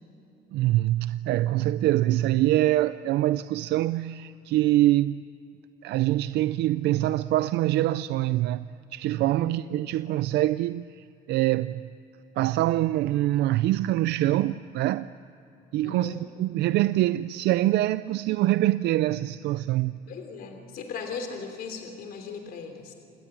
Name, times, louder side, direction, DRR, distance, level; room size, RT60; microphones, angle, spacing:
voice 1, 0.5-5.2 5.8-11.9 12.4-15.1 15.7-20.0, right 15 dB, 80° right, 0.5 m, -24 dB
voice 2, 9.4-9.8 15.8-16.2 20.1-22.9, left 5 dB, 60° left, 3.2 m, -38 dB
28.0 x 19.5 x 9.0 m
cardioid pair, 160°, 17 cm